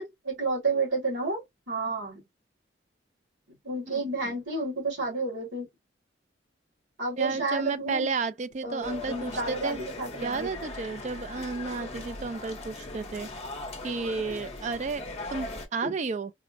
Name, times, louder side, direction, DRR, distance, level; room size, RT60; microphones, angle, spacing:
voice 1, 0.0-1.4 1.7-2.2 3.6-5.7 7.0-8.1 8.6-10.5 15.8-15.9, right 3 dB, 70° right, 2.2 m, -31 dB
voice 2, 7.2-9.8 10.2-13.3 13.8-16.3, right 4 dB, 35° right, 0.3 m, -32 dB
sound 1, 8.8-15.7, left 2 dB, 30° left, 0.7 m, -39 dB
4.2 x 2.1 x 2.5 m
head